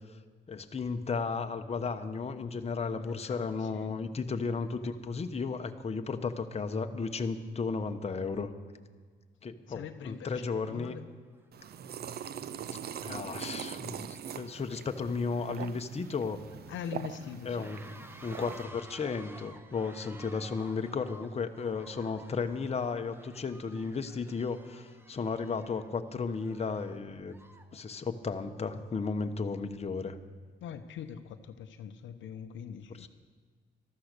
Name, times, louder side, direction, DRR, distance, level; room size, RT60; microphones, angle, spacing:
voice 1, 0.5-8.5 9.4-11.0 13.0-16.4 17.4-27.3 27.7-30.2 33.0-33.1, left 4 dB, 30° left, 6 dB, 1.1 m, -34 dB
voice 2, 2.9-3.9 9.7-11.1 16.7-17.7 30.6-33.1, left 8 dB, 75° left, 8 dB, 0.7 m, -43 dB
sound 1, 11.2-11.5 11.8-27.8, right 1 dB, 10° right, 1.0 m, -55 dB
sound 2, 11.5-18.6, right 8 dB, 55° right, 0.6 m, -42 dB
13.0 x 13.0 x 6.7 m, 1.5 s
cardioid pair, 90°, 20 cm